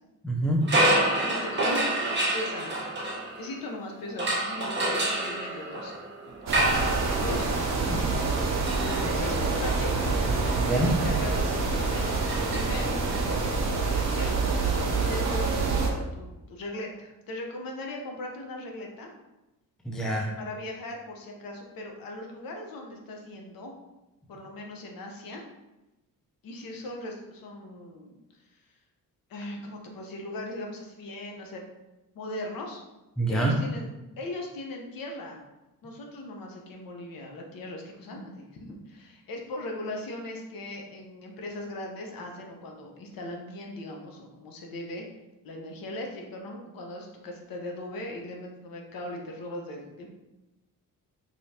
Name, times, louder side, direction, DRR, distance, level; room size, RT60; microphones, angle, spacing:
voice 1, 0.2-0.7 7.8-8.0 10.6-10.9 19.8-20.3 33.2-33.6, right 1 dB, ahead, -1 dB, 0.6 m, -26 dB
sound 1, 0.6-3.7 4.2-13.2, right 1 dB, 30° right, 1.1 m, -29 dB
voice 2, 1.2-2.9 3.4-5.9 7.1-7.6 7.9-8.3 8.8-10.0 10.7-14.4 14.9-19.1 20.4-23.7 24.3-25.4 26.4-28.2 29.3-31.6 32.1-32.8 33.3-33.9 34.2-35.4 35.8-45.1 45.4-50.1, left 1 dB, 80° left, 1 dB, 0.9 m, -39 dB
sound 2, 6.5-15.9, right 3 dB, 50° right, 0.8 m, -27 dB
4.9 x 3.1 x 2.8 m, 0.99 s
cardioid pair, 130°, 34 cm